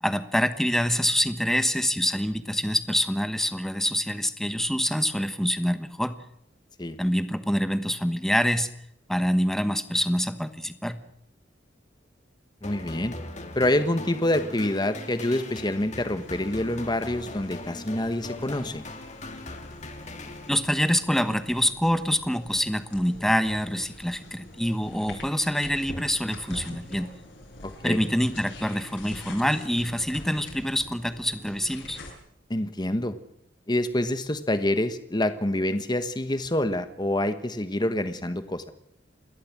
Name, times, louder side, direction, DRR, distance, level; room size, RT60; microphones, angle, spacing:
voice 1, 0.0-6.2 7.0-8.7 9.1-11.0 20.5-27.1 27.8-32.0, equal, ahead, 10 dB, 1.2 m, -26 dB
sound 1, 12.6-21.0, left 2 dB, 40° left, 2.5 m, -40 dB
voice 2, 12.6-13.1 13.5-18.8 27.6-28.0 32.5-33.2 33.7-38.7, left 1 dB, 25° left, 10 dB, 1.3 m, -27 dB
sound 2, 16.2-32.1, left 1 dB, 80° left, 7.0 m, -45 dB
29.5 x 13.0 x 7.5 m, 0.73 s
head